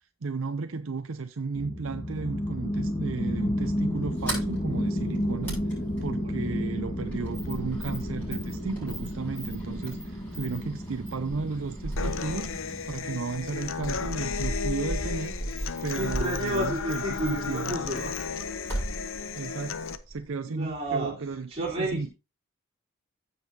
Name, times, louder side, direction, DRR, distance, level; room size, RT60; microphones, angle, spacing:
voice 1, 0.2-12.6 12.9-15.4 15.8-17.7 19.3-22.1, right 4 dB, 70° right, 0.6 m, -34 dB
sound 1, 1.6-13.6, equal, 25° left, 1.7 m, -32 dB
Sliding door, 3.9-20.3, right 1 dB, 10° left, 6.5 m, -38 dB
voice 2, 6.2-6.7 15.9-18.2 20.5-21.2 21.5-22.1, right 1 dB, 30° right, 3.9 m, -31 dB
Human voice / Acoustic guitar, 12.0-19.9, left 6 dB, 70° left, 0.7 m, -34 dB
15.5 x 5.4 x 2.8 m
head